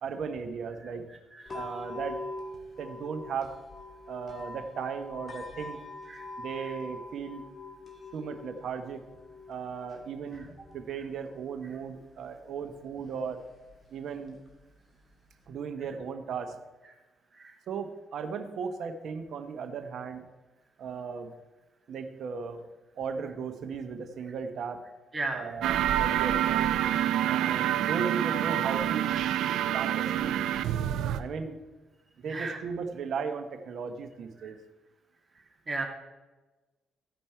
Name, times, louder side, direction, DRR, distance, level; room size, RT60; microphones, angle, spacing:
voice 1, 0.0-1.1 1.5-2.2 2.8-3.5 4.1-5.8 6.4-7.4 8.1-9.0 9.5-10.4 10.7-13.4 13.9-14.4 15.5-16.6 17.7-20.3 20.8-21.3 21.9-24.8 25.3-26.7 27.3-29.2 29.7-30.3 31.2-31.6 32.2-34.6, right 6 dB, 65° right, 6 dB, 1.1 m, -36 dB
sound 1, 1.5-15.5, left 2 dB, 30° left, 2.3 m, -45 dB
voice 2, 25.1-25.6 32.2-32.6 35.7-35.8, right 3 dB, 30° right, 2 dB, 2.0 m, -34 dB
sound 2, 25.6-31.2, right 11 dB, 85° right, 0.5 m, -27 dB
15.0 x 5.3 x 4.4 m, 1.2 s
cardioid pair, 90°, 0 cm